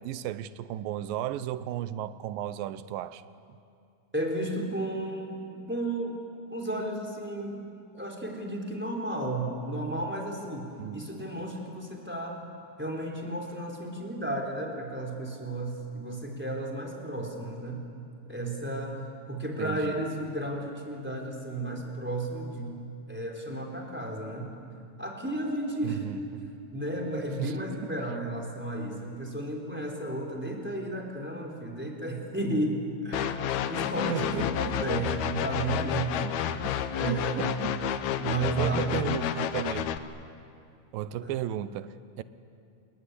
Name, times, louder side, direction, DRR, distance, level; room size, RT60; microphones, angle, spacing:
voice 1, 0.0-3.2 10.8-11.0 19.6-20.0 25.8-26.5 27.4-27.6 27.8-27.9 34.1-34.5 36.2-36.3 37.0-37.7 38.6-39.9 40.9-42.2, right 12 dB, 90° right, 14 dB, 2.5 m, -34 dB
voice 2, 4.1-6.2 6.5-7.6 7.9-12.4 12.8-17.8 18.3-19.0 19.3-22.8 23.1-24.5 25.0-26.0 26.7-36.1 36.9-37.6 38.2-39.0 41.2-41.3, right 1 dB, 5° right, 1 dB, 3.4 m, -33 dB
sound 1, 33.1-40.0, left 9 dB, 70° left, 2.0 m, -30 dB
27.5 x 21.5 x 9.8 m, 2.6 s
omnidirectional pair, 3.9 m